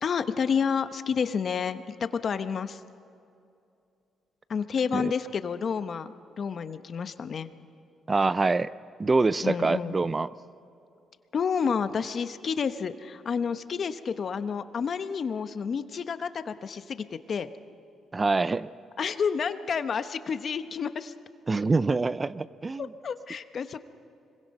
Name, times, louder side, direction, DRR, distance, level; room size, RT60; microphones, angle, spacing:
voice 1, 0.0-2.8 4.5-7.5 9.4-10.0 11.3-17.5 19.0-21.1 22.8-23.8, left 6 dB, 50° left, 11 dB, 0.9 m, -30 dB
voice 2, 8.1-8.7 9.0-10.3 18.1-18.7 21.5-22.9, right 3 dB, 25° right, 17 dB, 0.4 m, -25 dB
25.0 x 22.5 x 5.4 m, 2.6 s
cardioid pair, 90°, 0 cm